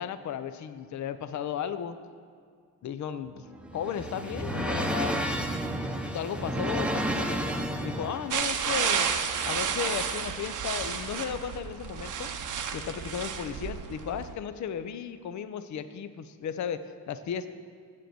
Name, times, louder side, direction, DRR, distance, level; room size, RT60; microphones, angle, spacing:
voice 1, 0.0-2.0 2.8-3.4 3.7-5.3 6.1-7.4 7.8-9.1 9.4-12.3 12.7-17.5, left 8 dB, 50° left, 12 dB, 0.6 m, -35 dB
sound 1, 3.3-8.4, right 1 dB, 5° right, 0.8 m, -31 dB
sound 2, 8.3-14.3, right 7 dB, 50° right, 0.9 m, -31 dB
7.5 x 6.9 x 7.7 m, 2.1 s
supercardioid pair, 70°, 38 cm